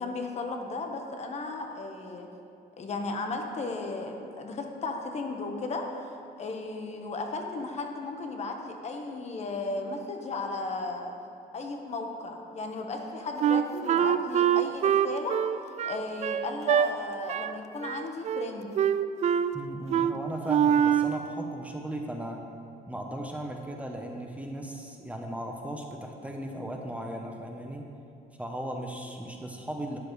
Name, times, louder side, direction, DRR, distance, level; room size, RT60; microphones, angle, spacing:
voice 1, 0.0-2.3 2.8-6.1 6.4-11.1 11.5-15.4 15.8-18.8, left 3 dB, 40° left, 3 dB, 1.2 m, -35 dB
Wind instrument woodwind instrument, 13.4-16.9 17.3-17.6 17.8-18.5 18.8-19.5 19.9-20.1 20.5-21.2, right 9 dB, 40° right, 0.4 m, -24 dB
voice 2, 19.5-22.4 22.9-27.9 28.4-30.0, right 1 dB, 10° right, 2 dB, 0.8 m, -37 dB
11.5 x 10.0 x 3.2 m, 2.5 s
cardioid pair, 110°, 17 cm